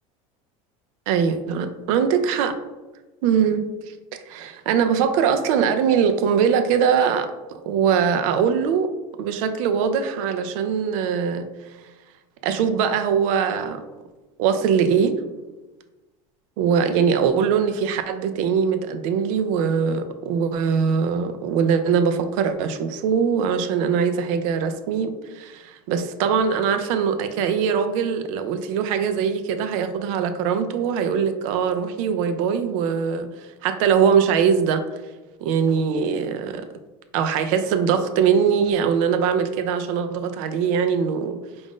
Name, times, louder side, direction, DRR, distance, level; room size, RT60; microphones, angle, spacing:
voice 1, 1.1-2.5 3.2-3.7 4.3-8.9 9.2-11.5 12.4-13.8 14.4-15.1 16.6-33.3 33.6-34.9 35.4-36.7 37.1-41.4, right 7 dB, 70° right, 9 dB, 0.5 m, -22 dB
4.9 x 2.5 x 3.7 m, 1.1 s
supercardioid pair, 130°, 18 cm